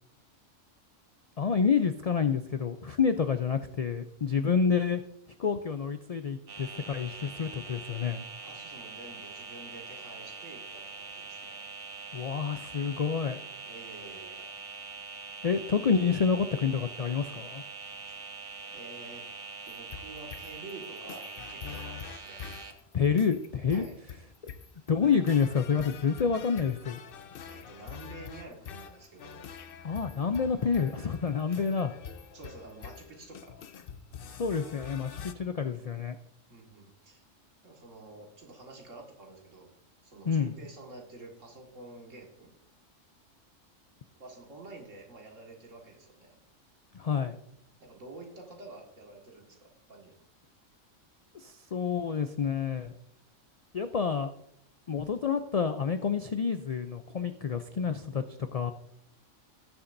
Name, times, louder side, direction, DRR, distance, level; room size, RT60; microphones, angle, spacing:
voice 1, 1.4-5.0 5.4-8.2 12.1-13.4 15.4-17.6 22.9-23.9 24.9-27.0 29.8-31.9 34.4-36.2 40.3-40.5 46.9-47.4 51.3-52.9 53.7-54.3 54.9-58.2 58.5-58.7, left 6 dB, 75° left, 9 dB, 0.3 m, -28 dB
sound 1, 6.5-22.7, right 4 dB, 50° right, 1.1 m, -43 dB
voice 2, 8.4-11.6 13.7-14.5 18.1-18.2 18.7-19.3 19.7-22.4 23.7-24.0 27.4-29.5 32.3-33.5 36.5-37.2 37.6-39.7 40.0-42.5 44.2-46.3 47.8-50.1, right 2 dB, 75° right, 0 dB, 2.2 m, -49 dB
sound 2, 19.7-35.3, left 7 dB, 55° left, 0.7 m, -45 dB
18.0 x 7.1 x 2.6 m, 0.74 s
omnidirectional pair, 1.3 m